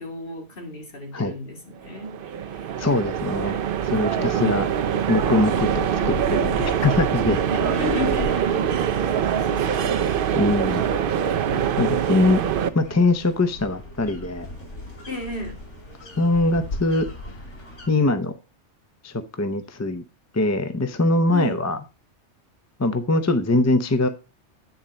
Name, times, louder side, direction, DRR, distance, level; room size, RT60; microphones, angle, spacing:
voice 1, 0.0-2.7 4.1-4.5 7.4-8.8 9.1-10.2 11.4-11.9 15.1-15.6 21.3-21.6, left 2 dB, 50° left, 2.3 m, -33 dB
sound 1, 1.8-12.7, right 9 dB, 55° right, 0.7 m, -24 dB
voice 2, 2.8-3.6 3.8-4.7 5.1-7.4 10.3-10.8 11.8-12.4 12.7-14.5 16.2-17.1 17.9-18.3 19.0-20.0 20.3-21.8 22.8-24.1, left 2 dB, 20° left, 0.5 m, -22 dB
sound 2, 5.1-17.9, left 1 dB, 85° left, 3.7 m, -38 dB
9.4 x 4.4 x 5.1 m
omnidirectional pair, 1.2 m